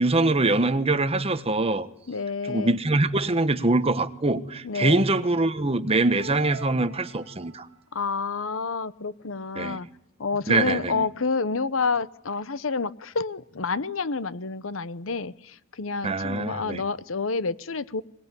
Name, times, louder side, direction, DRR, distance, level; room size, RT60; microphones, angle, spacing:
voice 1, 0.0-1.9 2.5-7.7 9.5-9.8 10.5-11.1 16.0-16.8, right 2 dB, 30° right, 1.3 m, -23 dB
voice 2, 2.1-2.8 4.6-5.1 7.9-9.9 10.2-18.0, left 4 dB, 90° left, 1.0 m, -29 dB
sound 1, 6.2-7.8, right 6 dB, 75° right, 2.2 m, -42 dB
22.5 x 21.5 x 9.8 m
head